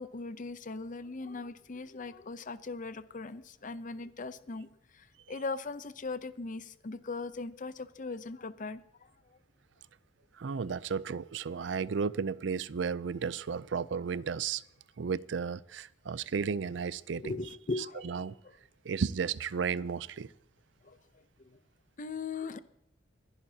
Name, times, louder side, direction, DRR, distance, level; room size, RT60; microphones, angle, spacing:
voice 1, 0.0-4.7 4.9-8.8 17.2-18.5 20.8-21.0 21.5-21.6 22.0-22.6, left 3 dB, 45° left, 0.7 m, -39 dB
voice 2, 10.4-14.6 15.0-17.4 17.8-18.3 18.8-20.3, right 6 dB, 70° right, 0.5 m, -33 dB
24.5 x 11.0 x 2.8 m
head